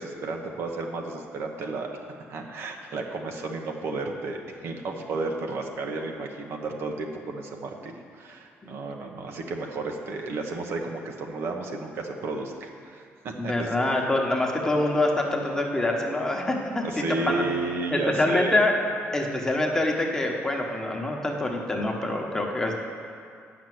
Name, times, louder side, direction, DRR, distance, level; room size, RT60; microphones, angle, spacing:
voice 1, 0.0-1.9 2.3-13.7 16.8-18.6, right 3 dB, 60° right, 2 dB, 1.1 m, -32 dB
voice 2, 13.4-17.4 17.9-18.7 19.1-22.7, left 2 dB, 10° left, 0 dB, 1.2 m, -25 dB
8.5 x 6.1 x 7.7 m, 2.3 s
cardioid pair, 115°, 5 cm